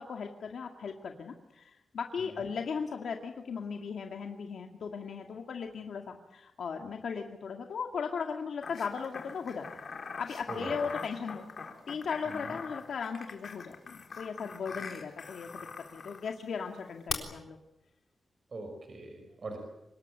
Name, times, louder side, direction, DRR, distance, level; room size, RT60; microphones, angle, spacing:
voice 1, 0.0-9.8 10.2-11.4 11.9-15.7 15.9-17.6, left 6 dB, 80° left, 3 dB, 2.0 m, -37 dB
sound 1, 8.6-16.3 17.1-17.2, left 5 dB, 55° left, 3.9 m, -42 dB
voice 2, 10.5-10.9 12.2-12.5 18.5-19.6, right 2 dB, 45° right, 4 dB, 5.8 m, -42 dB
25.5 x 21.0 x 9.1 m, 0.89 s
wide cardioid pair, 160°, 0 cm